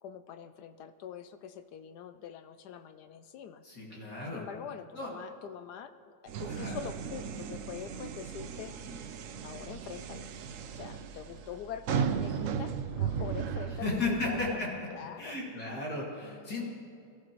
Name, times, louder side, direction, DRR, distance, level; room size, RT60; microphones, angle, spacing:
voice 1, 0.0-3.6 4.3-5.9 6.2-8.7 9.4-10.3 10.7-14.6 14.9-15.4 16.2-16.6, left 8 dB, 75° left, 10 dB, 0.9 m, -44 dB
voice 2, 3.6-4.4 4.9-5.1 6.4-6.8 13.8-14.7 15.2-16.6, left 3 dB, 50° left, -4 dB, 2.7 m, -34 dB
sound 1, 6.3-14.5, right 7 dB, 80° right, 0.7 m, -36 dB
22.0 x 14.0 x 3.0 m, 2.5 s
omnidirectional pair, 2.1 m